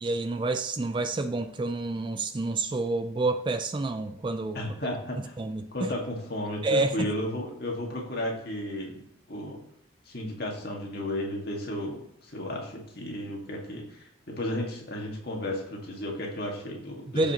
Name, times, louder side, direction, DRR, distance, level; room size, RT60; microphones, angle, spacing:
voice 1, 0.0-4.6 5.4-5.7 6.6-6.9 17.1-17.3, right 2 dB, 25° right, 8 dB, 0.3 m, -28 dB
voice 2, 4.5-5.3 5.7-9.0 9.3-9.6 10.1-17.3, left 1 dB, 50° left, -1 dB, 1.8 m, -33 dB
14.5 x 5.1 x 2.9 m, 0.72 s
head